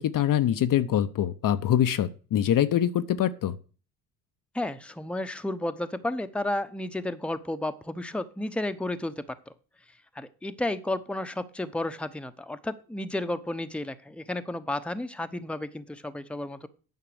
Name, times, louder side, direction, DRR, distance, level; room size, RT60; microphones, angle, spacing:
voice 1, 0.0-3.6, left 11 dB, 50° left, 11 dB, 0.9 m, -24 dB
voice 2, 4.5-9.2 10.1-16.7, left 1 dB, 5° left, 10 dB, 1.0 m, -32 dB
9.3 x 5.9 x 7.8 m, 0.38 s
hypercardioid pair, 60°, 42 cm